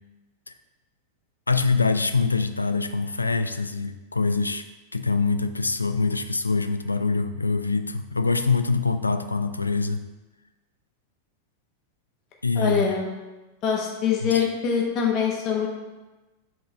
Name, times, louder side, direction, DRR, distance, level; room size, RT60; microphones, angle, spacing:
voice 1, 1.5-4.6 4.9-10.1 12.4-12.9 14.2-14.4, left 4 dB, 80° left, 10 dB, 0.3 m, -24 dB
voice 2, 12.6-13.2 13.6-15.7, left 7 dB, 40° left, 0 dB, 1.0 m, -24 dB
5.0 x 3.8 x 5.0 m, 1.1 s
figure-of-eight pair, 90°, 0 cm